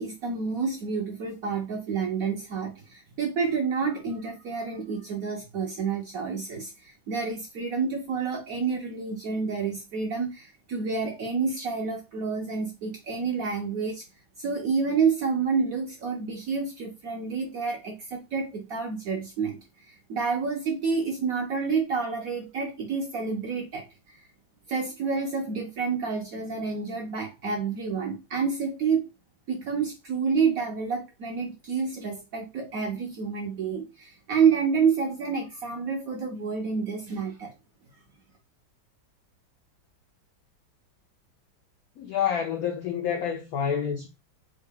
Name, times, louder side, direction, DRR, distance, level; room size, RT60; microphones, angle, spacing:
voice 1, 0.0-14.0 14.4-19.6 19.9-24.2 24.7-29.0 29.5-37.5, right 5 dB, 70° right, 0.8 m, -29 dB
voice 2, 42.0-44.1, left 8 dB, 90° left, 0.8 m, -28 dB
3.5 x 2.2 x 3.5 m
omnidirectional pair, 2.1 m